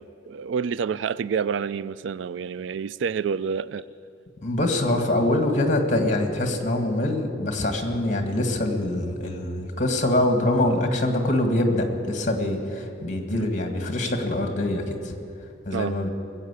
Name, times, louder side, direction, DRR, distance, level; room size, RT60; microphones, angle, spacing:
voice 1, 0.0-3.8 13.3-13.5 15.7-15.9, right 6 dB, 80° right, 18 dB, 0.4 m, -28 dB
voice 2, 4.4-15.1 15.7-16.1, left 1 dB, 45° left, 4 dB, 1.8 m, -24 dB
21.0 x 8.3 x 8.2 m, 2.7 s
head